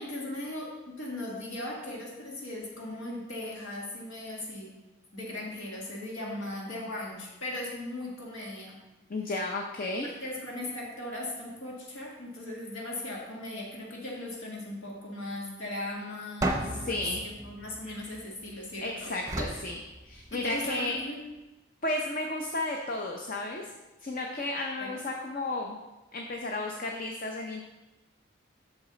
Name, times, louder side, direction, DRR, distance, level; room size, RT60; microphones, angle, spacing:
voice 1, 0.0-4.7 5.1-8.8 10.0-17.0 17.2-19.1 20.3-21.2 24.8-24.9, left 1 dB, 80° left, -3 dB, 1.8 m, -38 dB
voice 2, 9.1-10.1 16.7-17.2 18.8-21.0 21.8-23.7 24.0-25.8 26.1-27.7, left 2 dB, 45° left, 1 dB, 0.6 m, -33 dB
sound 1, 16.4-18.6 19.3-20.7, right 1 dB, 15° right, 0.7 m, -34 dB
8.2 x 6.4 x 3.9 m, 1.1 s
head